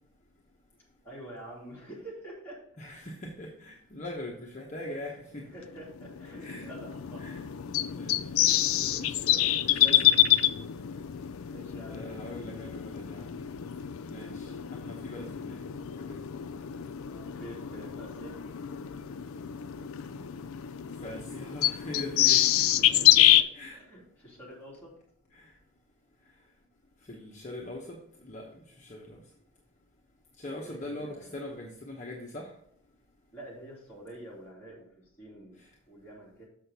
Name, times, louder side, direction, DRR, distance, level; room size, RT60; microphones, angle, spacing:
voice 1, 1.0-2.6 4.9-5.1 5.4-7.3 8.0-8.4 11.4-12.6 17.1-18.4 22.8-24.9 30.6-31.4 33.3-34.8 35.2-36.4, right 1 dB, 10° left, -7 dB, 2.7 m, -47 dB
voice 2, 2.8-5.4 6.4-6.7 7.2-7.4 7.9-8.2 8.8-10.5 11.9-13.3 14.0-15.6 16.0-16.2 21.0-22.7 23.5-23.8 25.3-25.5 27.1-28.0 28.2-29.2 30.4-32.5, left 1 dB, 35° left, -2 dB, 0.9 m, -41 dB
sound 1, 5.7-23.4, left 12 dB, 80° left, 0.4 m, -27 dB
6.8 x 6.4 x 4.1 m, 0.69 s
head